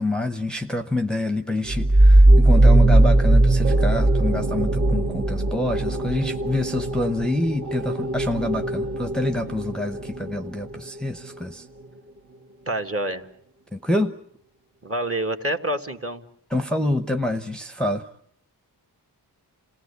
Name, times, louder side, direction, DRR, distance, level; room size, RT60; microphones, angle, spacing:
voice 1, 0.0-11.7 13.7-14.1 16.5-18.1, left 1 dB, ahead, 6 dB, 0.9 m, -26 dB
sound 1, 1.6-11.0, right 2 dB, 50° right, 2.1 m, -19 dB
voice 2, 12.7-13.2 14.8-16.2, right 1 dB, 35° right, 3 dB, 1.8 m, -27 dB
27.5 x 17.5 x 8.3 m, 0.68 s
wide cardioid pair, 90°, 39 cm